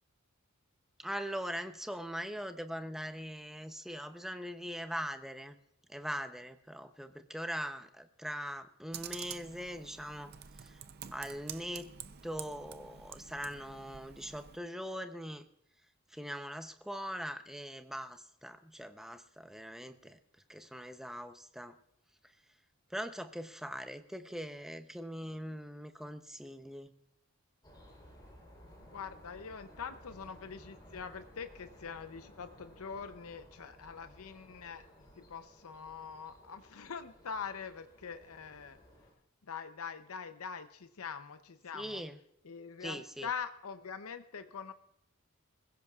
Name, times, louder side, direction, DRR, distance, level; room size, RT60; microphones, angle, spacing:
voice 1, 1.0-5.6 5.9-10.3 10.6-10.8 11.1-11.9 12.2-15.5 16.1-20.2 20.5-21.8 22.9-26.9 41.7-42.2 42.8-43.3, equal, ahead, 8 dB, 0.7 m, -41 dB
Computer keyboard, 8.9-14.6, right 9 dB, 45° right, 0.6 m, -48 dB
sound 1, 27.6-39.1, equal, 20° left, 3.7 m, -57 dB
voice 2, 28.8-34.9 35.2-38.8 39.4-42.0 42.4-44.7, left 6 dB, 85° left, 9 dB, 0.7 m, -43 dB
26.0 x 16.0 x 2.4 m, 0.76 s
head